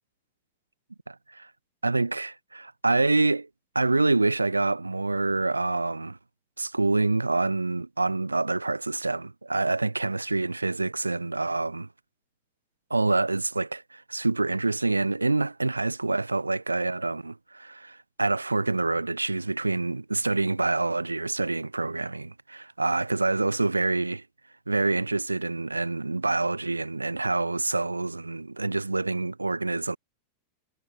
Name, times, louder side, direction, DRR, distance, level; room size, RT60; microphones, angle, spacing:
voice 1, 1.1-1.5 1.8-3.5 3.7-6.2 6.6-11.9 12.9-24.2 24.7-30.0, right 3 dB, 80° right, 1.3 m, -26 dB
figure-of-eight pair, 90°, 0 cm